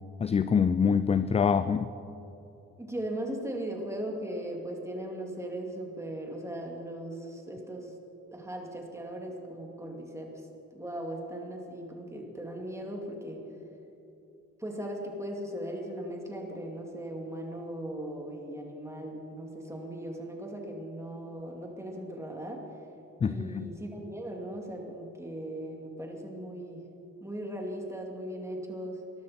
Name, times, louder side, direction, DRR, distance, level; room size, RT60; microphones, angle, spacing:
voice 1, 0.2-1.9 23.2-23.7, left 6 dB, 20° left, 14 dB, 0.3 m, -25 dB
voice 2, 2.8-7.9 8.3-13.4 14.6-22.6 23.2-26.9 27.2-29.0, right 1 dB, 10° right, 0 dB, 2.6 m, -38 dB
20.5 x 12.5 x 4.4 m, 2.9 s
cardioid pair, 90°, 30 cm